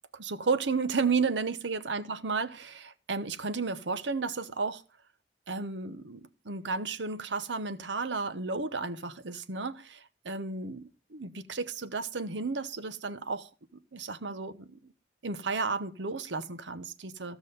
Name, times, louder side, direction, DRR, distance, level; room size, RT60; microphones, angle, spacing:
voice 1, 0.1-4.8 5.5-13.5 13.9-14.9 15.2-17.4, right 4 dB, 90° right, 0.9 m, -33 dB
15.5 x 6.1 x 5.2 m
head